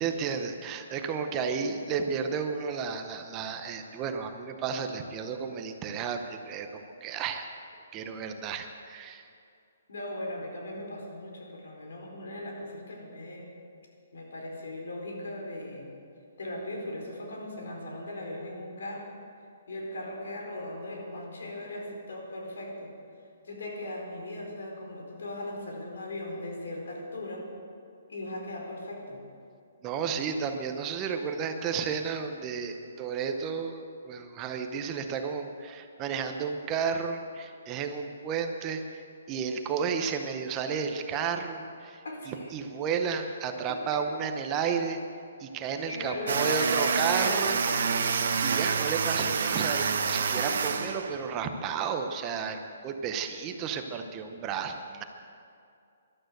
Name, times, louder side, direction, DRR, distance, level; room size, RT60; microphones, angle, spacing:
voice 1, 0.0-7.5 7.9-9.2 29.8-45.0 45.4-47.6 48.4-55.0, right 6 dB, 20° right, 6 dB, 0.7 m, -32 dB
voice 2, 9.9-13.5 14.1-15.9 16.4-19.1 19.7-22.9 23.4-27.5 28.1-29.2 30.0-30.4 42.0-42.5 43.7-43.8 45.9-47.9, left 1 dB, 75° left, 0 dB, 4.5 m, -38 dB
sound 1, 46.3-51.4, right 6 dB, 60° right, 1.1 m, -28 dB
13.0 x 12.0 x 7.9 m, 2.5 s
hypercardioid pair, 170°, 0 cm